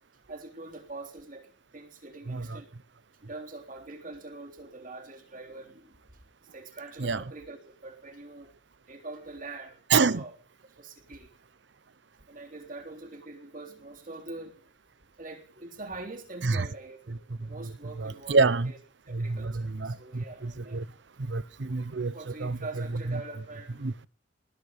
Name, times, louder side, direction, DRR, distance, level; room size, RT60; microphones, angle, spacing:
voice 1, 0.3-2.7 3.2-6.0 6.4-8.5 8.9-10.4 10.6-11.3 12.3-14.6 15.2-18.4 18.7-18.8 19.1-20.9 22.1-23.9, right 2 dB, 45° right, 3.5 m, -44 dB
voice 2, 2.3-2.6 7.0-7.2 9.9-10.2 16.4-16.7 18.0-18.7 19.1-20.8 21.2-22.1 22.4-22.6 23.8-24.1, right 4 dB, 70° right, 0.8 m, -27 dB
20.0 x 9.7 x 6.6 m
head